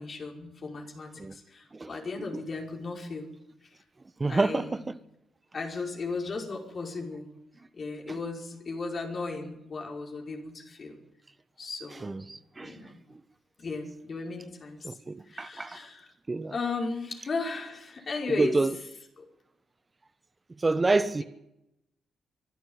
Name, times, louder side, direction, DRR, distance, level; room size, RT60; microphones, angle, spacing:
voice 1, 0.0-3.3 4.3-4.8 5.5-7.3 7.7-11.0 11.6-12.2 12.6-13.0 13.6-15.0 15.3-16.1 16.5-18.6 19.2-19.3, left 3 dB, 50° left, 5.5 m, -35 dB
voice 2, 4.2-4.7 12.0-12.7 14.8-15.8 16.3-16.5 18.4-18.7 20.6-21.2, right 3 dB, 30° right, 1.1 m, -27 dB
23.5 x 12.5 x 9.8 m
hypercardioid pair, 45°, 0 cm